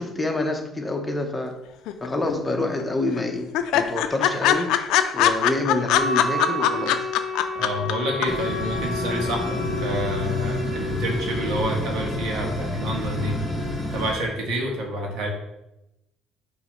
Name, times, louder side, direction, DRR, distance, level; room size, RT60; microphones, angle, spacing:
voice 1, 0.0-1.5 2.0-4.7 5.1-7.1, left 2 dB, 15° left, 3 dB, 0.9 m, -27 dB
sound 1, 1.9-2.5 2.8-2.9 3.2-3.3 3.5-7.9 8.2-8.3, left 11 dB, 75° left, 0.5 m, -21 dB
Wind instrument woodwind instrument, 5.9-11.8, left 2 dB, 50° right, 1.8 m, -30 dB
voice 2, 7.5-13.4 13.9-15.3, right 1 dB, 75° right, 1 dB, 1.6 m, -28 dB
sound 2, 8.2-14.1, left 1 dB, 30° right, 1.9 m, -29 dB
6.0 x 3.2 x 5.3 m, 0.89 s
cardioid pair, 95°, 0 cm